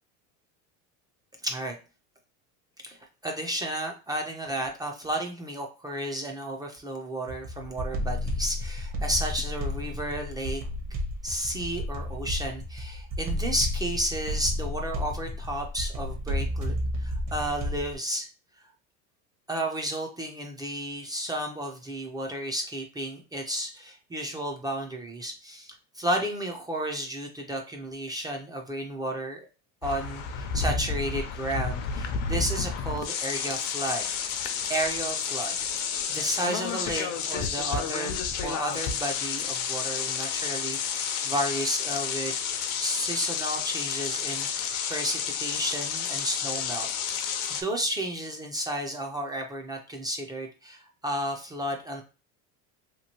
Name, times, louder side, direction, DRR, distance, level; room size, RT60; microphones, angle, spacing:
voice 1, 1.4-1.8 2.8-10.6 11.2-18.3 19.5-29.4 29.8-34.1 34.7-42.4 42.8-52.0, right 1 dB, 10° right, 2 dB, 0.3 m, -32 dB
sound 1, 7.3-17.9, left 1 dB, 45° right, 0.8 m, -32 dB
sound 2, 29.8-47.6, left 7 dB, 55° left, 0.6 m, -31 dB
2.9 x 2.5 x 2.8 m, 0.32 s
supercardioid pair, 125°, 36 cm